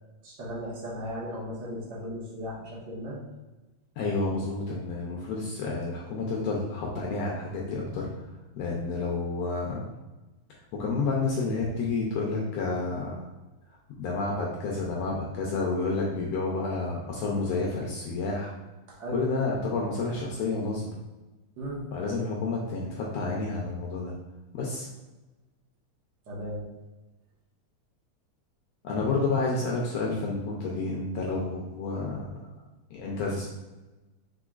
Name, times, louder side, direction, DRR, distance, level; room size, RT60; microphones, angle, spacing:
voice 1, 0.2-3.2 18.9-19.2 21.6-21.8 26.3-26.6, equal, 65° right, -5 dB, 1.0 m, -36 dB
voice 2, 4.0-8.3 8.6-9.8 10.7-13.2 14.0-18.5 19.1-20.9 21.9-24.1 24.5-24.9 28.8-32.3 32.9-33.5, left 3 dB, 80° left, -2 dB, 1.5 m, -30 dB
4.9 x 4.4 x 2.4 m, 1.1 s
omnidirectional pair, 3.6 m